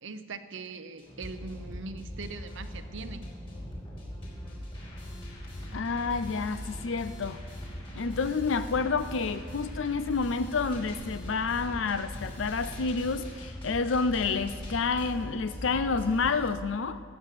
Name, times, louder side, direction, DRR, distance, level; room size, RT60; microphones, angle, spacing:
voice 1, 0.0-3.3, right 3 dB, 70° right, 11 dB, 0.8 m, -41 dB
sound 1, 1.0-16.5, equal, 30° left, 4.1 m, -41 dB
voice 2, 5.7-7.4 7.9-17.0, left 4 dB, 70° left, 12 dB, 0.5 m, -29 dB
18.5 x 8.0 x 6.7 m, 2.1 s
head